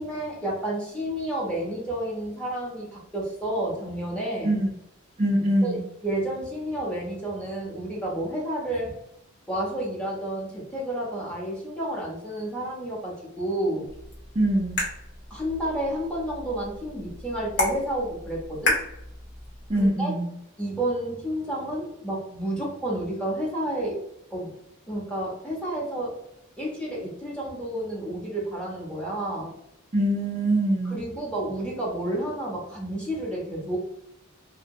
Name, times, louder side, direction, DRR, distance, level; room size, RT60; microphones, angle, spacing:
voice 1, 0.0-4.6 5.6-8.9 9.5-13.9 15.3-18.8 19.7-20.1 20.6-24.0 24.3-24.6 24.9-26.1 26.6-29.5 30.8-33.8, right 1 dB, 5° left, -6 dB, 0.8 m, -30 dB
voice 2, 5.2-5.8 14.4-14.8 19.7-20.3 29.9-31.0, right 1 dB, 30° right, -3 dB, 0.4 m, -23 dB
sound 1, 13.9-19.9, left 2 dB, 50° left, 1.0 m, -32 dB
2.7 x 2.1 x 2.6 m, 0.79 s
head